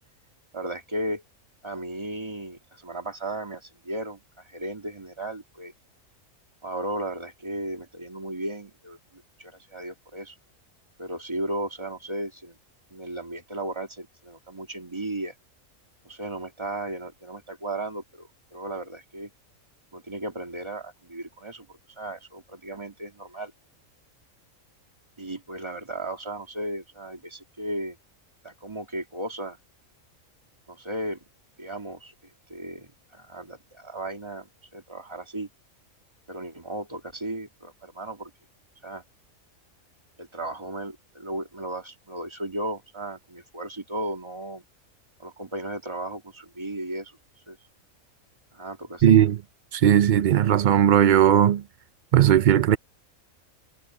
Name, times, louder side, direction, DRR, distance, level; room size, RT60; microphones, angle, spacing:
voice 1, 0.5-1.2 1.6-5.7 6.6-10.4 11.0-12.6 12.9-15.3 16.0-19.3 19.9-23.5 25.2-28.0 28.4-29.6 30.7-31.2 31.6-32.1 32.5-35.5 36.3-38.3 38.8-39.0 40.2-44.6 45.2-47.2 47.5-47.6 48.5-49.2, right 1 dB, 20° right, 2.0 m, -35 dB
voice 2, 49.0-49.4 49.7-51.6 52.1-52.8, right 10 dB, 70° right, 0.4 m, -17 dB
omnidirectional pair, 1.4 m